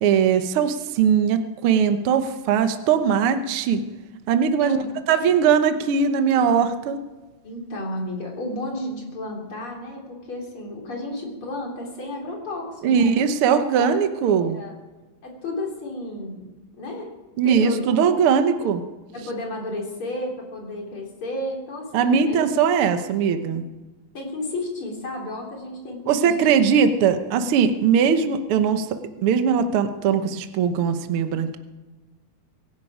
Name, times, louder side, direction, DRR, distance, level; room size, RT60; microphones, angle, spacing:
voice 1, 0.0-3.8 4.3-4.8 5.1-7.0 12.8-14.6 17.4-18.8 21.9-23.6 26.1-31.6, right 7 dB, 60° right, 8 dB, 1.5 m, -20 dB
voice 2, 7.4-13.3 13.8-13.9 14.2-14.7 15.2-16.5 16.8-17.1 17.4-18.2 19.1-22.4 24.1-26.3, left 1 dB, 45° left, -1 dB, 4.4 m, -32 dB
24.5 x 10.5 x 5.0 m, 1.2 s
omnidirectional pair, 3.4 m